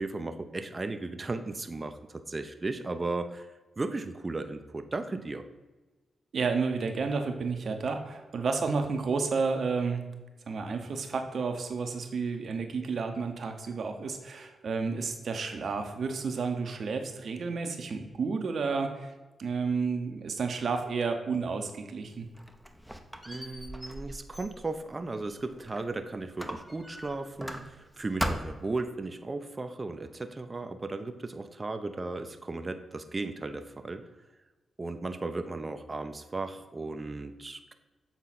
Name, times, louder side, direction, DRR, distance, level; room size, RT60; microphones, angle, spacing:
voice 1, 0.0-5.4 23.2-34.0 34.8-37.7, right 3 dB, 35° right, 8 dB, 0.6 m, -36 dB
voice 2, 6.3-10.1 10.5-19.1 19.4-22.3, right 4 dB, 65° right, 6 dB, 0.8 m, -31 dB
Squeak, 22.1-25.9 26.4-27.9 28.2-28.8, equal, ahead, 0.8 m, -38 dB
7.5 x 4.0 x 4.1 m, 1.2 s
supercardioid pair, 40°, 0 cm